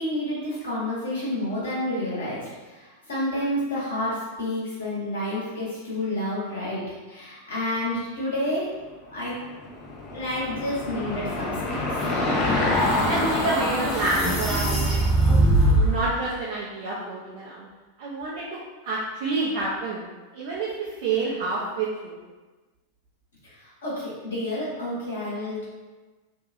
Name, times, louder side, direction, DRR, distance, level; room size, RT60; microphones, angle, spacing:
voice 1, 0.0-8.7 9.1-9.4 9.7-9.9 10.1-12.0 23.4-25.6, left 1 dB, 70° left, -8 dB, 1.2 m, -30 dB
Car passing by / Engine, 9.3-16.1, left 2 dB, 30° left, 0.4 m, -28 dB
sound 1, 12.0-16.0, right 1 dB, 5° left, 0.8 m, -23 dB
voice 2, 13.0-15.1 15.7-17.7 18.0-20.1 20.3-22.2, right 3 dB, 50° right, -5 dB, 0.4 m, -28 dB
2.6 x 2.2 x 2.5 m, 1.3 s
figure-of-eight pair, 90°, 0 cm